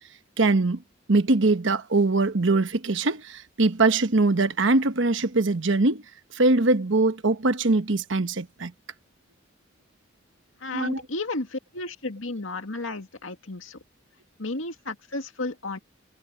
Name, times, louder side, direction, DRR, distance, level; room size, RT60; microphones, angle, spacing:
voice 1, 0.4-0.8 1.1-6.0 6.3-8.7 10.7-11.0, right 3 dB, 70° right, 1.1 m, -22 dB
voice 2, 10.6-13.8 14.4-15.8, left 2 dB, 85° left, 2.2 m, -33 dB
head